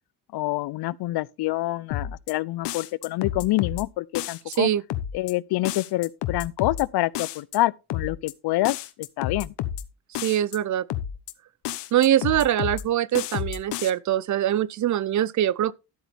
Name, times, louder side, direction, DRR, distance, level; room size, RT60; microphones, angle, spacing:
voice 1, 0.3-4.7 5.1-9.5, left 17 dB, 70° left, 0.6 m, -27 dB
sound 1, 1.9-2.3 2.7-3.8 4.2-4.6 4.9-5.3 5.7-6.8 7.1-7.6 7.9-8.3 8.7-9.8 10.2-10.6 10.9-11.3 11.6-12.8 13.1-13.9, left 11 dB, 90° left, 1.1 m, -30 dB
voice 2, 4.5-4.8 10.2-10.9 11.9-15.7, right 11 dB, 45° right, 0.5 m, -23 dB
12.0 x 8.1 x 3.4 m
cardioid pair, 100°, 40 cm